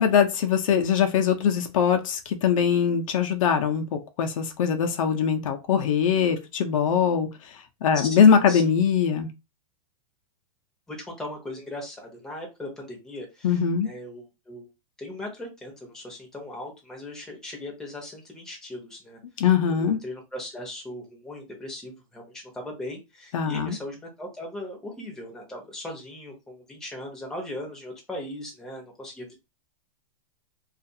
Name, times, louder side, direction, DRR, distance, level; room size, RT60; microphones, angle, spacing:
voice 1, 0.0-7.3 7.8-9.3 13.4-13.9 19.4-20.0 23.3-23.7, left 7 dB, 70° left, 0.6 m, -22 dB
voice 2, 7.9-8.6 10.9-14.7 15.0-29.3, left 1 dB, 5° left, 0.7 m, -38 dB
2.4 x 2.4 x 2.7 m
hypercardioid pair, 145°, 18 cm